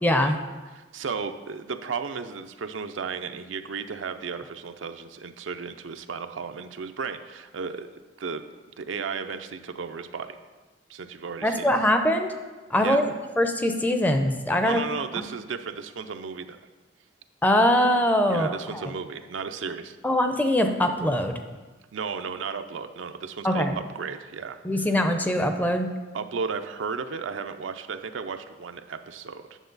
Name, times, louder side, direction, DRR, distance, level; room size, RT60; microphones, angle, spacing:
voice 1, 0.0-0.4 11.4-12.3 12.7-13.1 13.4-14.8 15.2-15.3 17.4-18.9 20.0-21.4 23.4-23.8 24.6-25.9, left 1 dB, 10° left, 6 dB, 0.5 m, -22 dB
voice 2, 0.8-7.9 8.2-8.4 8.8-10.4 10.9-11.7 12.8-13.1 14.6-16.6 18.3-20.0 21.9-23.7 23.9-24.6 26.1-29.6, right 5 dB, 90° right, 8 dB, 0.5 m, -34 dB
9.1 x 6.7 x 3.9 m, 1.3 s
head